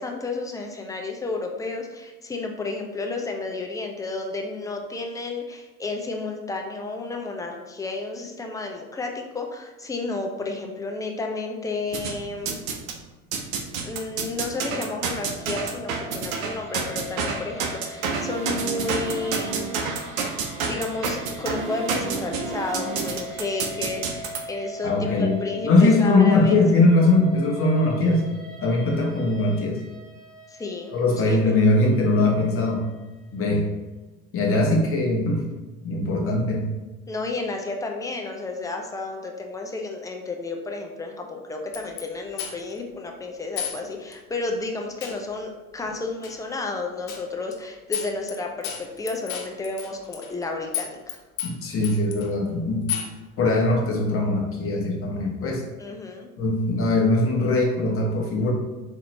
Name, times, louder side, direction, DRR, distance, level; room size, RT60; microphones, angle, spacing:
voice 1, 0.0-12.6 13.8-19.8 20.5-26.6 30.5-31.0 31.3-31.5 37.1-51.2 55.8-56.3, left 3 dB, 10° left, 2 dB, 0.4 m, -32 dB
sound 1, 11.9-13.0 13.3-24.4, right 5 dB, 70° right, 0.7 m, -29 dB
sound 2, 15.3-33.5, equal, 85° right, 1.1 m, -42 dB
voice 2, 24.8-25.4 25.6-28.3 28.6-29.8 30.9-32.8 33.3-33.7 34.3-35.4 35.8-36.7 51.4-52.9 53.4-55.6 56.4-58.5, left 2 dB, 30° left, 0 dB, 1.0 m, -21 dB
sound 3, 41.7-42.0 42.4-42.8 43.6-43.8 44.1-44.2 45.0-45.2 46.2-46.4 47.1-47.2 47.5-47.6 47.9-48.4 48.6-50.4 50.7-51.1 51.4-52.3 52.9-53.2, left 9 dB, 70° left, 0.8 m, -31 dB
3.8 x 2.9 x 3.2 m, 1.1 s
hypercardioid pair, 75°, 43 cm